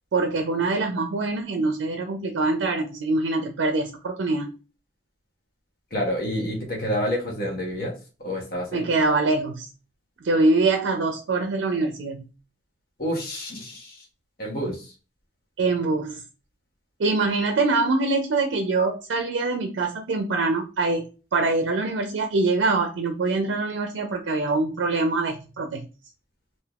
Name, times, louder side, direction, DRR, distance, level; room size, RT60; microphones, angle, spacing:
voice 1, 0.1-4.5 8.7-9.7 10.2-12.3 15.6-16.2 17.0-25.9, right 3 dB, 80° right, 5 dB, 0.4 m, -24 dB
voice 2, 5.9-7.9 8.2-8.8 13.0-14.0 14.4-14.8, equal, 50° left, 0 dB, 1.0 m, -28 dB
3.3 x 2.6 x 2.3 m, 0.33 s
head